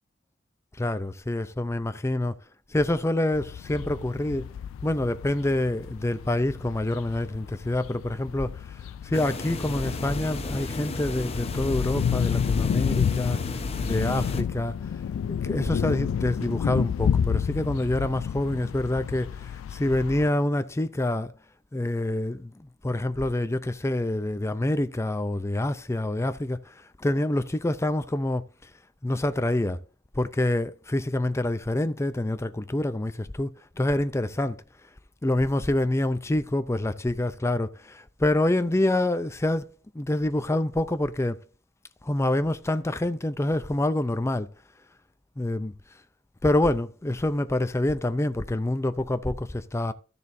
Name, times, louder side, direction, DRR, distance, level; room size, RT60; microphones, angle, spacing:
voice 1, 0.8-2.3 2.7-4.5 4.8-13.4 13.8-14.7 15.4-21.3 21.7-28.7 29.0-29.8 30.1-34.6 35.2-41.4 42.0-44.5 45.4-45.7 46.4-49.9, left 1 dB, 15° left, 0.5 m, -27 dB
sound 1, 3.3-20.3, left 7 dB, 80° left, 0.3 m, -30 dB
sound 2, 9.1-14.4, left 2 dB, 30° left, 0.9 m, -34 dB
13.5 x 6.9 x 2.6 m
head